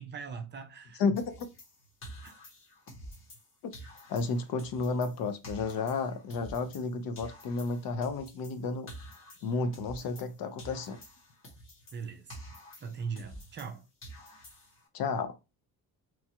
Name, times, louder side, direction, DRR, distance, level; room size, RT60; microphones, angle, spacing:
voice 1, 0.0-1.0 2.2-2.3 11.9-12.4 12.8-13.9, right 5 dB, 30° right, 0.4 m, -40 dB
voice 2, 1.0-1.5 3.6-3.8 4.1-8.9 9.4-11.0 14.9-15.3, left 4 dB, 65° left, 0.7 m, -32 dB
sound 1, 1.2-3.5 3.7-6.9 7.1-10.3 10.6-13.7 14.0-14.9, equal, 35° left, 1.0 m, -49 dB
3.1 x 2.3 x 2.8 m
cardioid pair, 155°, 38 cm